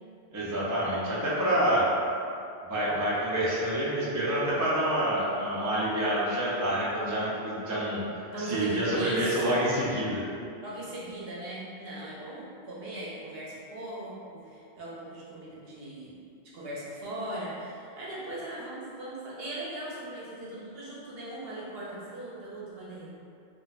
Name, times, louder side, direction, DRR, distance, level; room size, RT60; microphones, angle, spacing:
voice 1, 0.3-1.9 2.7-8.0 8.4-10.2, right 1 dB, 30° right, -8 dB, 0.3 m, -27 dB
voice 2, 8.3-9.6 10.6-16.1 16.4-23.1, right 1 dB, 60° right, -6 dB, 0.9 m, -38 dB
2.4 x 2.2 x 4.0 m, 2.5 s
omnidirectional pair, 1.2 m